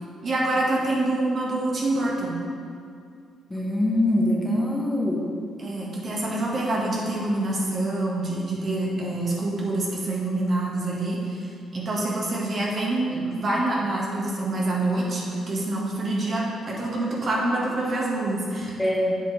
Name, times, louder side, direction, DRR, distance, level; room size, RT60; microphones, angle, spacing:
voice 1, 0.2-2.4 5.6-18.8, right 2 dB, 45° right, -3 dB, 1.8 m, -26 dB
voice 2, 3.5-5.2 18.8-19.2, left 1 dB, 15° left, -2 dB, 1.2 m, -23 dB
7.9 x 7.6 x 3.5 m, 2.3 s
cardioid pair, 90°, 0 cm